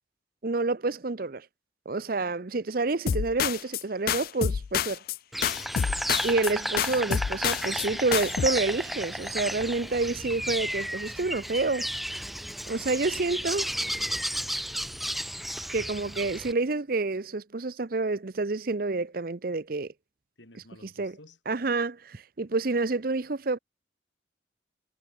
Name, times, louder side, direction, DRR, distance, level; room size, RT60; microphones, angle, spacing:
voice 1, 0.4-1.5 1.9-5.0 6.2-11.9 12.7-13.7 15.7-19.9 21.0-21.1 21.5-23.6, right 3 dB, 50° right, 0.7 m, -28 dB
sound 1, 3.1-5.2 5.4-6.5 6.8-7.9 8.1-8.5, left 8 dB, 50° left, 0.3 m, -28 dB
Insect, 5.3-16.5, equal, ahead, 0.7 m, -33 dB
voice 2, 5.4-6.1 7.4-8.3 9.8-10.0 12.6-13.0 15.7-16.0 20.4-21.4, left 2 dB, 75° left, 5.4 m, -51 dB
head